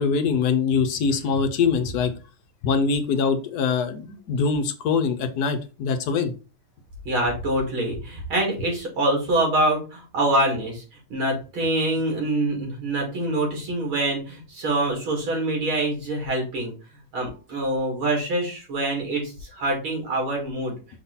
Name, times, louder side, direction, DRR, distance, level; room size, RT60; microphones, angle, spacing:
voice 1, 0.0-2.1 2.6-6.3, left 5 dB, 60° left, 7 dB, 1.2 m, -23 dB
voice 2, 7.0-10.8 11.1-16.7 17.1-20.7, right 1 dB, 85° right, -1 dB, 3.3 m, -25 dB
5.9 x 3.9 x 4.1 m, 0.33 s
omnidirectional pair, 2.2 m